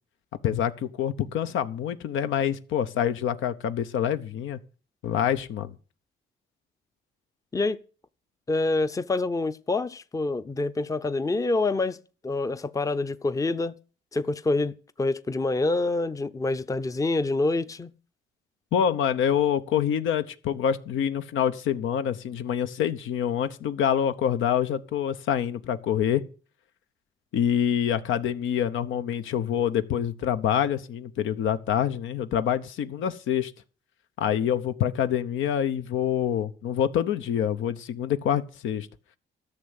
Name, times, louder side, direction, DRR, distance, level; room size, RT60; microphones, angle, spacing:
voice 1, 0.4-4.6 5.0-5.7 18.7-26.2 27.3-33.5 34.2-38.9, left 9 dB, 80° left, 0.9 m, -26 dB
voice 2, 8.5-12.0 12.2-13.8 14.1-14.7 15.0-17.9, left 2 dB, 15° left, 0.6 m, -26 dB
13.0 x 6.8 x 8.0 m
cardioid pair, 90°, 20 cm